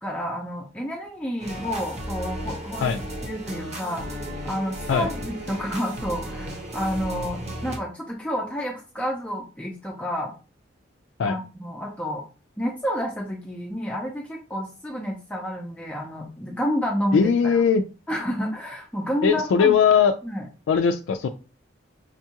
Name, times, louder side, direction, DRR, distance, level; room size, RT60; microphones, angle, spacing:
voice 1, 0.0-2.9 3.2-4.2 4.4-10.3 11.2-12.2 12.6-17.6 18.1-19.7 20.2-20.4, equal, 5° left, -1 dB, 0.5 m, -30 dB
sound 1, 1.4-7.8, equal, 35° right, 0.8 m, -34 dB
voice 2, 17.1-17.8 19.2-20.1 20.7-21.3, left 6 dB, 80° left, 6 dB, 0.3 m, -19 dB
5.2 x 2.3 x 2.8 m, 0.34 s
head